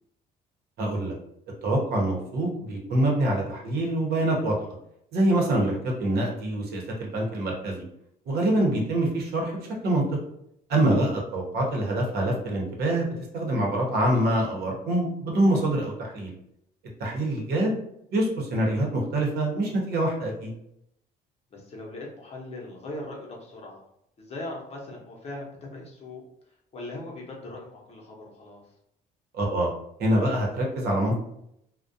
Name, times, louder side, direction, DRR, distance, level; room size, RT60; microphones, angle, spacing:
voice 1, 0.8-1.1 1.6-4.6 5.1-7.9 8.3-10.0 10.7-13.1 13.3-16.3 17.0-17.8 18.1-20.5 29.3-29.7 30.0-31.2, right 1 dB, 70° right, 0 dB, 0.8 m, -25 dB
voice 2, 21.5-23.8 24.2-28.6, left 2 dB, 40° left, -2 dB, 0.7 m, -40 dB
2.3 x 2.1 x 2.6 m, 0.74 s
cardioid pair, 110°, 17 cm